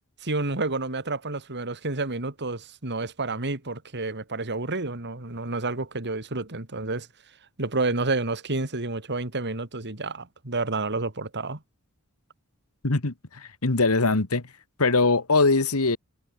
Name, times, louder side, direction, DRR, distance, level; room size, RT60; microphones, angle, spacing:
voice 1, 0.2-7.1 7.6-11.6, right 3 dB, 55° right, 3.0 m, -29 dB
voice 2, 12.8-14.4 14.8-16.0, left 3 dB, 75° left, 1.7 m, -22 dB
head